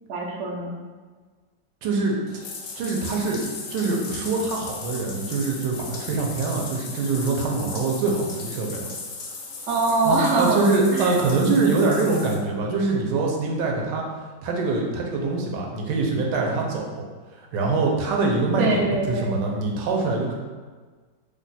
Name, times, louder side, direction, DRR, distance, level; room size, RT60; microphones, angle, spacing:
voice 1, 0.1-0.7 9.7-11.1 18.6-19.3, right 2 dB, 65° right, -1 dB, 0.7 m, -23 dB
voice 2, 1.8-2.1 2.8-3.4 3.7-8.9 10.0-14.0 14.4-17.1 17.3-20.3, right 3 dB, 85° right, -1 dB, 1.2 m, -24 dB
Bathtub (filling or washing), 2.3-12.3, left 4 dB, 70° left, 0.7 m, -37 dB
3.0 x 2.2 x 4.0 m, 1.4 s
omnidirectional pair, 1.9 m